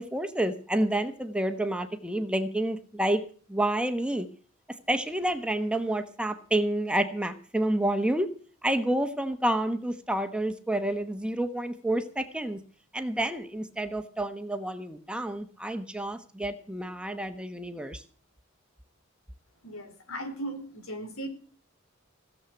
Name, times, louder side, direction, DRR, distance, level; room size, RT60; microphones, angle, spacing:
voice 1, 0.0-3.2 3.5-4.3 4.9-8.3 8.6-12.6 12.9-18.0, right 1 dB, 5° right, 8 dB, 1.1 m, -29 dB
voice 2, 19.6-21.3, right 1 dB, 80° left, 7 dB, 3.6 m, -37 dB
17.0 x 7.4 x 7.9 m, 0.43 s
head